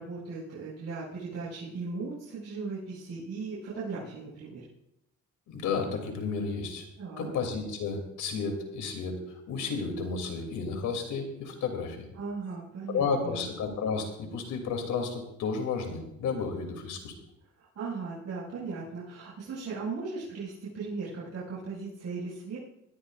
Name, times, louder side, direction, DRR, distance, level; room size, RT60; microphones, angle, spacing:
voice 1, 0.0-4.6 7.0-7.3 12.1-13.5 17.6-22.6, right 4 dB, 60° right, -8 dB, 5.8 m, -37 dB
voice 2, 5.5-6.9 7.2-12.0 12.9-17.1, left 5 dB, 80° left, 4 dB, 3.0 m, -32 dB
21.0 x 13.5 x 2.5 m, 0.85 s
cardioid pair, 90°, 30 cm